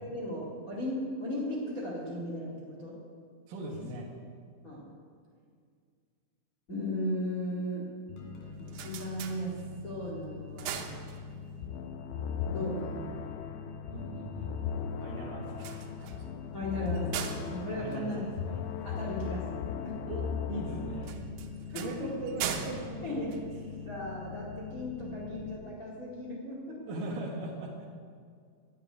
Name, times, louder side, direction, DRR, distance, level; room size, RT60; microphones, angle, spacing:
voice 1, 0.0-2.9 4.6-4.9 6.7-7.9 8.3-9.5 9.8-10.8 12.4-13.1 16.5-17.2 17.5-18.2 18.8-19.9 21.7-22.2 23.0-23.3 23.8-27.0, left 1 dB, 50° left, -4 dB, 1.0 m, -36 dB
voice 2, 3.5-4.1 13.9-14.5 15.0-16.1 17.8-18.6 20.1-21.3 21.7-23.4 26.9-27.9, right 2 dB, 65° right, -3 dB, 2.3 m, -39 dB
sound 1, 8.1-25.5, left 6 dB, 70° left, 4.7 m, -44 dB
sound 2, 8.4-10.0 10.4-11.7 15.5-18.9 21.0-24.1, right 8 dB, 80° right, 3.1 m, -41 dB
sound 3, 11.6-21.1, left 7 dB, 90° left, 3.2 m, -38 dB
11.5 x 9.5 x 9.6 m, 2.2 s
omnidirectional pair, 5.8 m